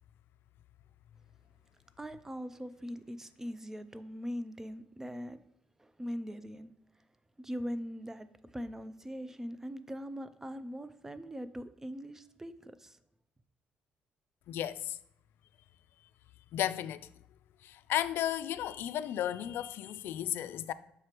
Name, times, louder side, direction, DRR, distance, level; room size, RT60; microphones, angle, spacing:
voice 1, 2.0-5.4 5.8-6.7 7.4-8.3 8.5-13.0, equal, 10° right, 0.4 m, -41 dB
voice 2, 14.5-15.0 16.5-17.1 17.6-20.7, left 11 dB, 75° left, 0.3 m, -34 dB
6.7 x 4.8 x 3.0 m
cardioid pair, 110°, 4 cm